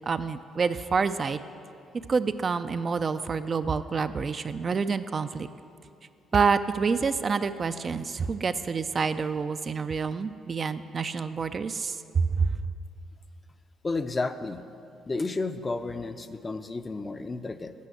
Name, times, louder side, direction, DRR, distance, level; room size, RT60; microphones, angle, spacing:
voice 1, 0.1-1.4 2.1-5.5 6.3-12.5, right 5 dB, 40° right, 11 dB, 0.3 m, -27 dB
voice 2, 13.8-14.6 15.1-17.7, left 3 dB, 25° left, 10 dB, 0.5 m, -32 dB
8.4 x 5.7 x 7.8 m, 2.6 s
supercardioid pair, 75°, 0 cm